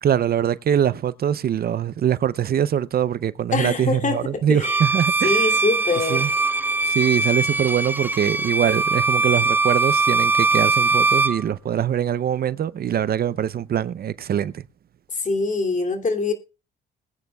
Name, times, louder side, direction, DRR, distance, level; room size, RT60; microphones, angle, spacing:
voice 1, 0.0-5.5 6.1-6.3 6.9-14.6, right 9 dB, 50° right, 0.6 m, -23 dB
voice 2, 3.5-4.8 5.2-6.2 15.1-16.3, left 3 dB, 40° left, 2.6 m, -24 dB
Bowed string instrument, 4.6-11.4, right 3 dB, 10° right, 0.5 m, -21 dB
21.0 x 9.3 x 2.3 m
cardioid pair, 90°, 20 cm